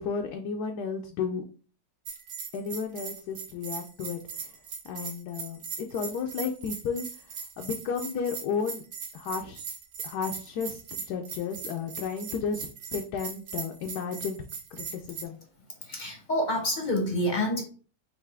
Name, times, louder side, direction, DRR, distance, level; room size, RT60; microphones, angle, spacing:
voice 1, 0.0-1.4 2.5-4.2 4.9-7.1 7.6-8.8 9.1-9.6 10.0-10.8 11.1-14.4 14.7-15.4, left 6 dB, 75° left, 3 dB, 1.1 m, -33 dB
Bell, 2.1-15.2, right 6 dB, 60° right, 1.0 m, -39 dB
voice 2, 15.8-17.6, left 1 dB, 40° left, 3 dB, 0.7 m, -28 dB
5.7 x 2.6 x 3.4 m, 0.39 s
omnidirectional pair, 1.9 m